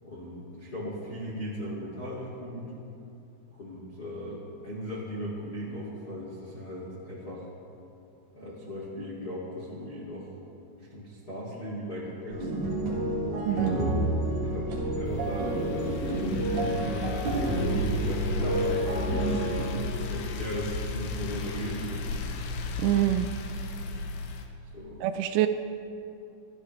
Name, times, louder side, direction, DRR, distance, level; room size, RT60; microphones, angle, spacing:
voice 1, 0.0-2.7 3.5-7.5 8.3-10.3 10.8-12.7 13.7-13.9 14.4-19.6 20.1-22.1 24.7-25.0, equal, 60° left, -5 dB, 1.0 m, -37 dB
sound 1, 12.3-19.8, right 1 dB, 50° right, 4.7 m, -29 dB
voice 2, 13.5-13.8 22.8-23.3 25.0-25.5, right 13 dB, 85° right, 9 dB, 2.9 m, -25 dB
sound 2, 15.1-24.5, left 4 dB, 85° left, 2.1 m, -35 dB
25.5 x 12.0 x 3.2 m, 2.6 s
omnidirectional pair, 5.9 m